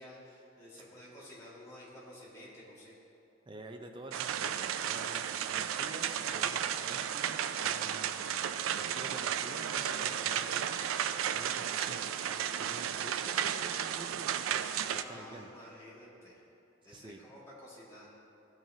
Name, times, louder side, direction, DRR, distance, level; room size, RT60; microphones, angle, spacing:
voice 1, 0.0-2.9 6.5-6.7 15.0-16.4 16.8-18.1, left 1 dB, 15° left, -8 dB, 2.0 m, -51 dB
voice 2, 3.5-8.5 8.7-15.5 16.8-17.2, right 2 dB, 25° right, 4 dB, 0.5 m, -49 dB
sound 1, 4.1-15.0, right 9 dB, 85° right, 0.3 m, -33 dB
14.0 x 6.0 x 2.8 m, 2.7 s
head